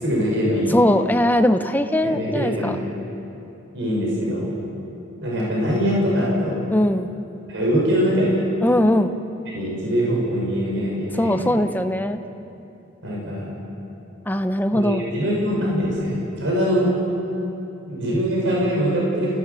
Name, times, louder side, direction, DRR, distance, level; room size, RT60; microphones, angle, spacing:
voice 1, 0.0-0.8 2.0-2.9 3.7-4.5 5.2-6.6 7.5-8.5 9.5-11.6 13.0-13.5 14.7-16.9 17.9-19.4, equal, 65° right, -4 dB, 6.0 m, -23 dB
voice 2, 0.7-2.8 6.7-7.1 8.6-9.1 11.2-12.2 14.3-15.0, left 1 dB, 10° left, 8 dB, 0.8 m, -20 dB
29.5 x 16.5 x 7.0 m, 2.8 s
head